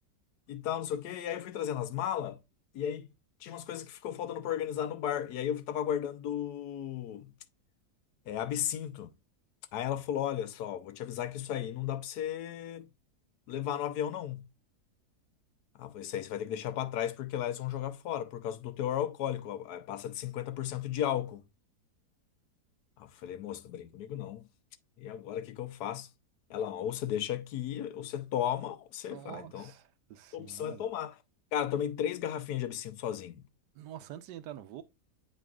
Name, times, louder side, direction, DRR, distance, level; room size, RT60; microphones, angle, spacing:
voice 1, 0.5-2.4 2.7-3.1 3.4-7.3 8.3-9.1 9.7-12.9 13.5-14.4 15.8-21.4 23.0-24.5 25.0-26.1 26.5-29.7 30.3-31.2 31.5-33.5, left 10 dB, 75° left, 1.1 m, -35 dB
voice 2, 29.1-30.9 33.7-34.8, right 12 dB, 85° right, 1.3 m, -46 dB
7.8 x 5.1 x 2.4 m
omnidirectional pair, 1.8 m